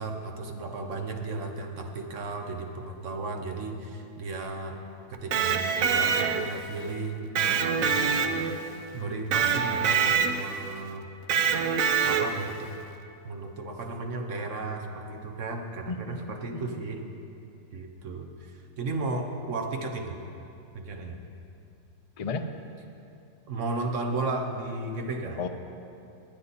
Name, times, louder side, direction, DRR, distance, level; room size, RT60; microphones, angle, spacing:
voice 1, 0.0-4.8 5.1-8.5 8.9-11.1 11.6-11.7 12.0-12.7 13.2-17.1 17.7-20.2 20.7-21.2 23.5-25.4, right 3 dB, 65° right, 4 dB, 1.4 m, -34 dB
Electric guitar, 5.1-6.7 7.4-8.7 9.3-10.6 11.3-12.5, right 6 dB, 80° right, 1.1 m, -25 dB
voice 2, 15.9-16.2 16.5-16.8 22.2-22.5 25.4-25.5, left 4 dB, 45° left, 7 dB, 0.5 m, -33 dB
19.0 x 9.8 x 4.2 m, 2.6 s
omnidirectional pair, 1.4 m